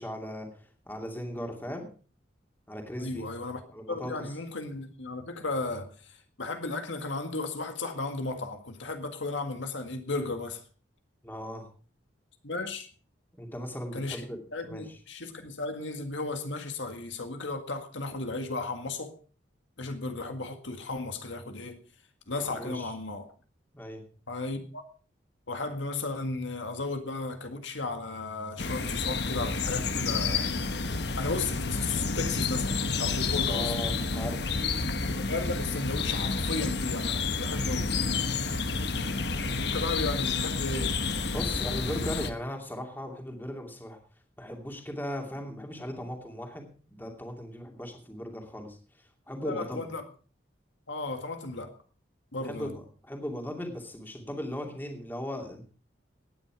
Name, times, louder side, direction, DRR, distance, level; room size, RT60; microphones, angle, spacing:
voice 1, 0.0-1.9 2.7-3.2 3.7-4.2 11.2-11.7 13.4-14.4 14.6-15.0 22.4-22.9 23.7-24.0 33.5-34.5 41.3-44.0 44.4-49.8 52.3-55.6, equal, 10° left, 2.5 m, -38 dB
voice 2, 3.0-3.6 3.9-10.6 12.4-12.9 13.9-14.3 14.5-19.1 19.8-21.8 22.3-23.3 24.3-24.8 25.5-30.5 31.1-33.7 35.1-37.9 39.5-41.0 49.4-50.0 50.9-51.7 52.3-52.7, left 3 dB, 75° left, 1.8 m, -35 dB
sound 1, 28.6-42.3, left 4 dB, 60° left, 1.2 m, -30 dB
17.0 x 9.9 x 4.8 m
head